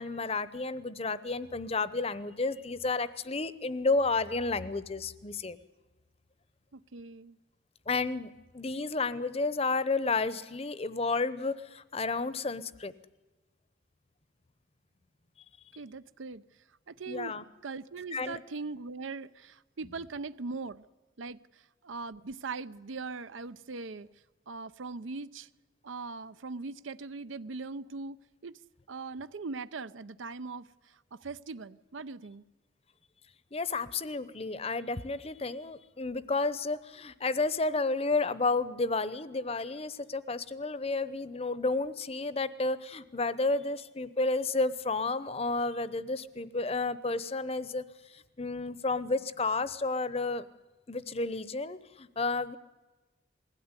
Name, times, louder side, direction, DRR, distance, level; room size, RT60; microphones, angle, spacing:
voice 1, 0.0-5.6 7.9-12.9 17.1-17.4 18.1-18.4 33.5-47.8 48.1-50.4 50.9-52.6, left 3 dB, 30° left, 0.8 m, -31 dB
voice 2, 6.7-7.4 15.8-16.4 16.9-20.9 21.2-24.1 24.5-25.5 25.8-28.6 28.9-32.4, right 4 dB, 80° right, 0.6 m, -40 dB
21.0 x 16.5 x 9.7 m
head